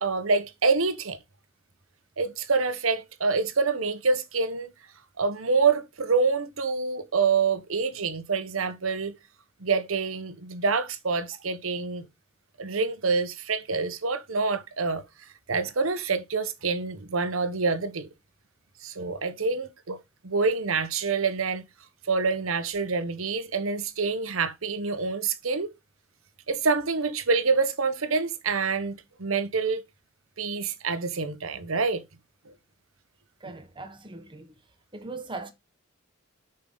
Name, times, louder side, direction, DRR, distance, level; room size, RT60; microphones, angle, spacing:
voice 1, 0.0-1.2 2.2-4.7 5.2-9.1 9.6-12.1 12.6-15.0 15.5-18.1 18.8-20.0 20.2-21.6 22.1-25.7 26.5-29.8 30.4-32.0, right 4 dB, 85° right, 1.0 m, -26 dB
voice 2, 33.4-34.6 34.9-35.5, right 3 dB, 25° right, 1.1 m, -39 dB
6.8 x 5.4 x 3.9 m
head